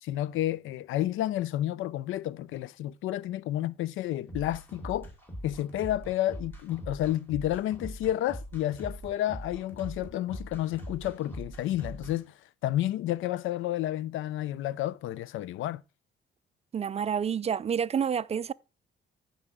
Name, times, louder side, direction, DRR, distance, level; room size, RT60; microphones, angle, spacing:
voice 1, 0.0-5.1 5.4-15.8, left 13 dB, 80° left, 0.5 m, -31 dB
sound 1, 4.3-12.1, equal, 10° left, 4.0 m, -42 dB
voice 2, 16.7-18.5, right 7 dB, 30° right, 0.3 m, -29 dB
14.5 x 5.6 x 3.6 m
cardioid pair, 90°, 20 cm